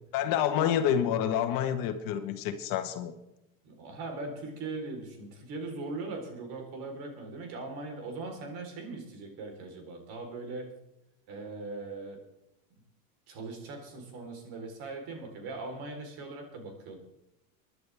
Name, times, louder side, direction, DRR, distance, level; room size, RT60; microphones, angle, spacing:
voice 1, 0.1-3.1, left 9 dB, 55° left, 8 dB, 1.6 m, -28 dB
voice 2, 3.6-10.7 11.3-12.2 13.3-17.0, right 3 dB, 60° right, 3 dB, 4.3 m, -40 dB
23.5 x 11.0 x 3.6 m, 0.86 s
supercardioid pair, 120°, 40 cm